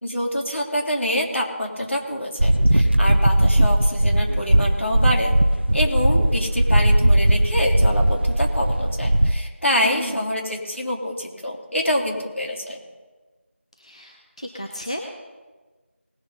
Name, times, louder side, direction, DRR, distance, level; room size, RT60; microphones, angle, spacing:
voice 1, 0.0-5.3 5.7-12.8, equal, 65° left, 0 dB, 3.4 m, -26 dB
sound 1, 2.4-9.3, right 1 dB, 50° right, 0.6 m, -18 dB
voice 2, 9.8-10.2 13.8-15.0, left 1 dB, 30° left, 2 dB, 0.8 m, -33 dB
19.5 x 6.9 x 5.4 m, 1.3 s
figure-of-eight pair, 175°, 7 cm